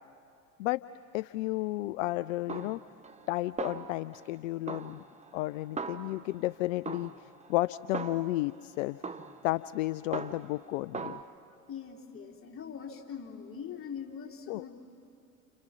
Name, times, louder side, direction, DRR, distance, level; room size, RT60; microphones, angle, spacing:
voice 1, 1.1-2.8 3.3-5.0 5.3-9.0 9.4-11.2 14.5-14.6, left 18 dB, 65° left, 17 dB, 0.5 m, -32 dB
Snare drum, 2.5-3.3 3.6-4.3 4.7-6.5 6.9-8.5 9.0-10.6 10.9-11.2, right 4 dB, 15° right, 1.1 m, -40 dB
voice 2, 11.7-14.7, left 7 dB, 30° left, 0 dB, 3.4 m, -42 dB
29.5 x 28.5 x 6.0 m, 2.8 s
figure-of-eight pair, 70°, 43 cm